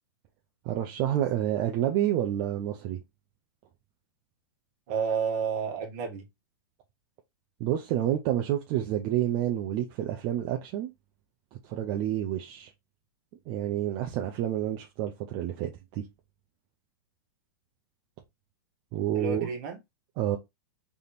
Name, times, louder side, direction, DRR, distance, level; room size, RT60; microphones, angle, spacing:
voice 1, 0.6-3.0 7.6-10.9 11.6-12.7 13.5-16.0 18.9-19.5 20.2-20.4, right 11 dB, 25° right, 0.5 m, -29 dB
voice 2, 4.9-6.2 19.1-19.8, right 6 dB, 45° right, 1.4 m, -30 dB
3.5 x 2.8 x 4.0 m
supercardioid pair, 170°, 13 cm